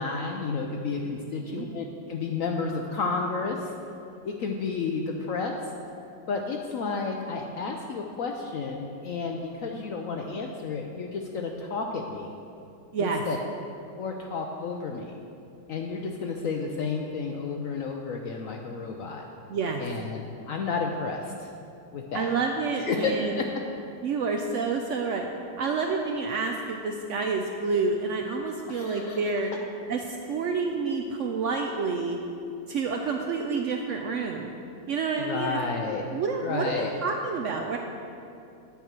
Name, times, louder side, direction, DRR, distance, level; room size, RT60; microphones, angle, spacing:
voice 1, 0.0-3.7 4.2-5.6 6.3-12.3 13.0-13.4 14.0-15.1 15.7-19.2 19.8-21.5 21.9-22.3 22.8-23.4 28.7-29.2 35.2-36.0 36.4-36.9, left 4 dB, 70° left, 2 dB, 0.8 m, -31 dB
voice 2, 19.5-19.8 22.1-23.4 24.0-25.3 25.6-29.5 29.9-32.2 32.7-34.5 34.9-35.6 36.1-37.8, right 4 dB, 90° right, 3 dB, 0.6 m, -28 dB
9.0 x 4.6 x 7.4 m, 2.7 s
omnidirectional pair, 1.9 m